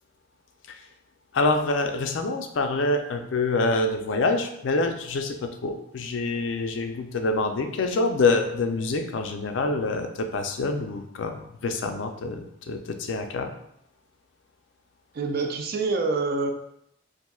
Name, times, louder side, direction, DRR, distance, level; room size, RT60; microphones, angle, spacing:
voice 1, 1.3-13.5, left 3 dB, 75° left, 6 dB, 0.4 m, -26 dB
voice 2, 15.1-16.5, right 3 dB, 55° right, 4 dB, 0.4 m, -26 dB
4.2 x 2.5 x 2.3 m, 0.76 s
head